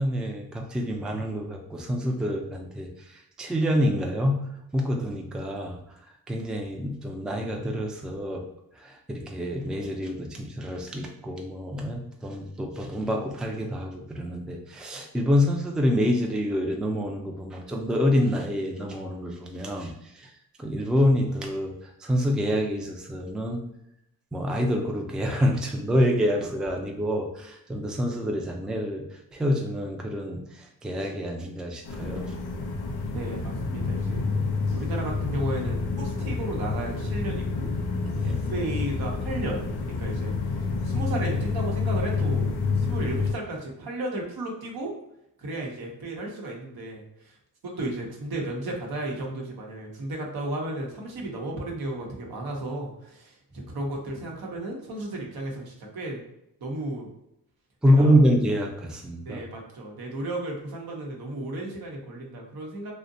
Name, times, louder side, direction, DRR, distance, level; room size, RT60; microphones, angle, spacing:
voice 1, 0.0-4.4 4.7-5.8 6.3-8.4 8.8-20.3 20.6-21.7 22.0-23.6 24.3-29.0 29.3-32.3 38.0-38.4 57.8-59.4, equal, ahead, 1 dB, 0.4 m, -26 dB
sound 1, 31.9-43.3, left 4 dB, 90° left, 0.5 m, -28 dB
voice 2, 33.1-34.2 34.7-37.7 38.2-44.9 45.4-47.4 47.6-56.2 56.6-57.1 58.0-58.2 59.2-62.9, right 1 dB, 75° right, -1 dB, 0.8 m, -34 dB
2.6 x 2.1 x 2.6 m, 0.80 s
cardioid pair, 65°, 37 cm